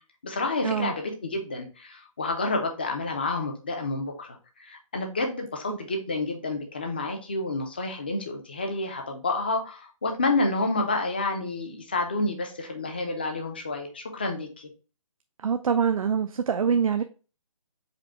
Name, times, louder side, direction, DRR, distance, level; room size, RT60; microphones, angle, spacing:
voice 1, 0.2-14.7, left 2 dB, 20° left, 3 dB, 0.4 m, -29 dB
voice 2, 15.4-17.0, right 7 dB, 80° right, 8 dB, 0.5 m, -24 dB
4.9 x 2.1 x 4.5 m, 0.35 s
hypercardioid pair, 175°, 17 cm